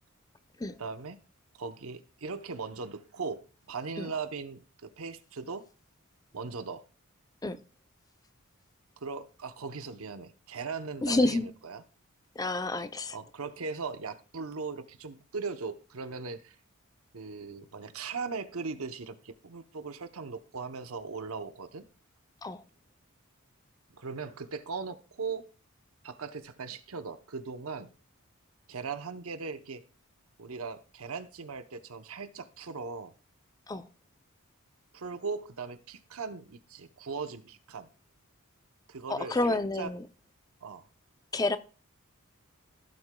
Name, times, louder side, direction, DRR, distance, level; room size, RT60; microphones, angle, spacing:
voice 1, 0.8-1.2 1.5-5.6 6.3-6.8 9.0-11.8 13.1-16.6 17.1-21.8 23.9-25.5 26.0-27.9 28.7-29.8 30.4-33.1 34.9-37.9 38.9-39.9 40.6-40.9, right 4 dB, 70° right, 0.8 m, -39 dB
voice 2, 11.0-11.5 12.4-13.2 22.4-22.6 33.7-33.9 39.1-40.0 41.3-41.6, left 2 dB, 15° left, 0.5 m, -29 dB
15.5 x 7.8 x 2.2 m
head